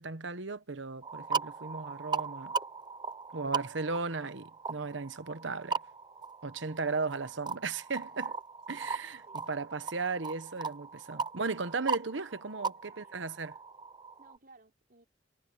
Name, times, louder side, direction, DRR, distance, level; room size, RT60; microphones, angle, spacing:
voice 1, 0.0-2.5 3.3-5.8 6.4-8.3 8.7-13.5, right 4 dB, 75° right, 1.1 m, -36 dB
sound 1, 1.0-14.4, right 5 dB, 25° right, 0.7 m, -38 dB
voice 2, 9.2-10.1 12.7-13.3 14.2-15.0, right 2 dB, 50° right, 4.5 m, -61 dB
head